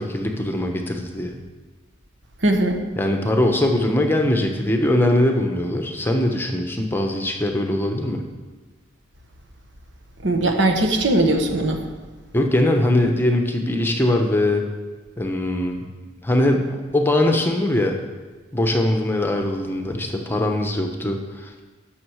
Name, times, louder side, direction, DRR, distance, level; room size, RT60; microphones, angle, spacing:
voice 1, 0.0-1.4 3.0-8.2 12.3-14.6 15.2-15.9 16.2-18.0 18.5-21.6, left 1 dB, 10° left, 3 dB, 0.9 m, -21 dB
voice 2, 2.4-2.8 10.2-11.8, right 1 dB, 70° right, 4 dB, 1.2 m, -19 dB
9.7 x 6.4 x 6.2 m, 1.3 s
head